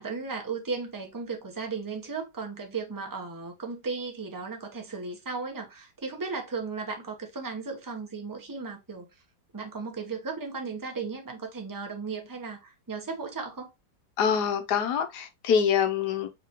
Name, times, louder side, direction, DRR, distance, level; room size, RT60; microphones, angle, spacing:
voice 1, 0.0-9.1 9.5-13.7, right 4 dB, 20° right, 0.5 m, -35 dB
voice 2, 14.2-16.3, left 7 dB, 70° left, 1.2 m, -25 dB
5.2 x 3.3 x 2.9 m
omnidirectional pair, 2.0 m